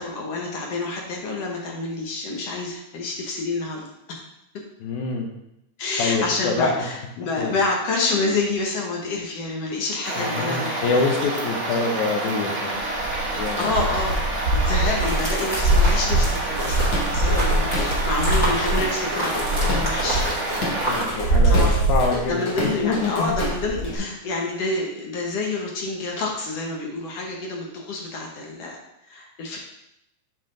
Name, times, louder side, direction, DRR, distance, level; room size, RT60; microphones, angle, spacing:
voice 1, 0.0-3.8 4.1-4.2 5.8-11.0 13.6-14.2 14.5-20.2 21.4-21.8 22.3-28.8 29.1-29.6, left 3 dB, 65° left, 0 dB, 1.9 m, -28 dB
voice 2, 4.8-5.3 6.0-6.8 7.4-7.6 10.1-12.8 13.3-13.7 20.9-22.4 22.8-23.4 24.0-24.1, left 4 dB, 80° left, 1 dB, 2.3 m, -25 dB
sound 1, 10.0-21.0, right 2 dB, 35° right, 1.2 m, -28 dB
sound 2, 12.7-22.7 23.0-23.9, right 1 dB, 30° left, 1.4 m, -23 dB
Drum kit / Drum, 16.6-18.0 18.3-24.0, left 1 dB, 45° left, 1.7 m, -31 dB
7.5 x 4.9 x 3.8 m, 0.82 s
omnidirectional pair, 3.5 m